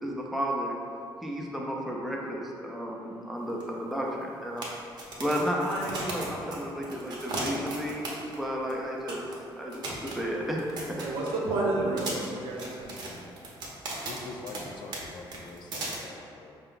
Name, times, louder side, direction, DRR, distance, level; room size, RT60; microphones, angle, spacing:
voice 1, 0.0-0.7 1.2-4.7 5.0-9.3 9.6-10.6 10.9-11.0, equal, ahead, -3 dB, 0.5 m, -32 dB
sound 1, 3.6-3.7 3.9-4.0 4.6-8.4 8.7-8.8 9.1-9.4 9.7-11.5 12.0-14.6 14.9-15.0 15.3-16.0, right 2 dB, 55° right, 0.9 m, -36 dB
voice 2, 11.0-13.1, right 2 dB, 80° right, -4 dB, 1.0 m, -30 dB
voice 3, 14.0-16.6, left 3 dB, 55° left, 3 dB, 0.4 m, -44 dB
5.4 x 2.2 x 3.8 m, 2.5 s
cardioid pair, 145°, 9 cm